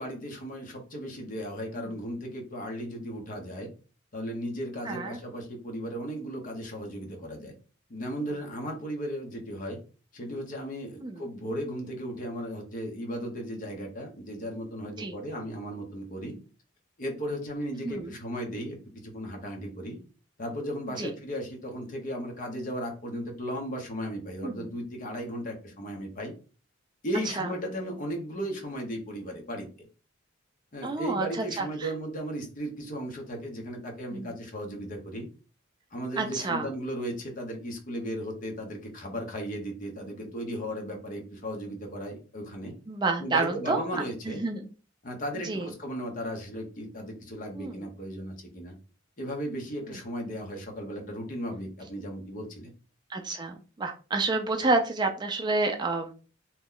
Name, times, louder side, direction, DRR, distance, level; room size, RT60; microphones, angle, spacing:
voice 1, 0.0-3.7 4.1-7.5 7.9-9.8 10.1-16.4 17.0-18.8 19.0-20.0 20.4-26.3 27.0-29.9 30.7-35.3 35.9-42.7 43.2-44.4 45.0-48.7 49.2-52.7, equal, 45° left, 2 dB, 0.8 m, -36 dB
voice 2, 4.8-5.2 11.0-11.2 15.0-15.1 17.8-18.2 21.0-21.1 24.4-24.7 27.2-27.5 30.8-31.9 34.1-34.3 36.2-36.7 42.9-44.7 45.4-45.7 47.6-47.9 49.9-50.0 53.1-56.1, right 3 dB, 20° right, 5 dB, 0.3 m, -30 dB
2.9 x 2.1 x 3.7 m, 0.36 s
head